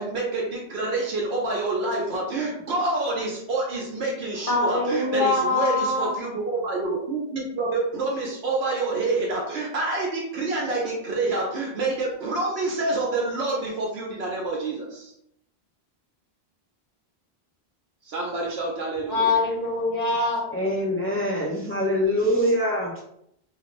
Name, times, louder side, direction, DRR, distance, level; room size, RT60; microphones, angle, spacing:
voice 1, 0.0-15.1 18.0-19.4, right 2 dB, 75° right, -2 dB, 0.9 m, -27 dB
voice 2, 4.5-6.1 19.1-20.5, left 3 dB, 55° left, -4 dB, 1.3 m, -23 dB
voice 3, 20.5-23.0, equal, 20° left, -3 dB, 0.3 m, -24 dB
2.6 x 2.5 x 3.0 m, 0.74 s
omnidirectional pair, 1.1 m